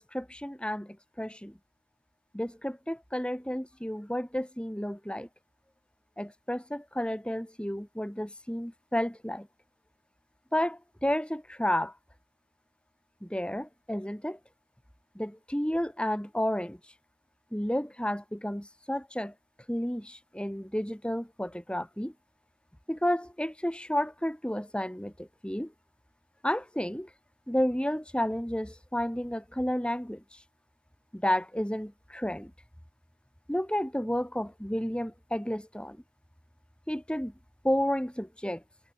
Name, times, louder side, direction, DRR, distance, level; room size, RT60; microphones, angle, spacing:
voice 1, 0.0-1.6 2.3-5.3 6.2-9.5 10.5-11.9 13.2-14.4 15.2-16.8 17.5-19.3 19.7-22.1 22.9-25.7 26.4-27.1 27.5-30.4 31.1-32.5 33.5-36.0 36.9-37.3 37.6-38.6, equal, 5° left, 2.0 m, -31 dB
head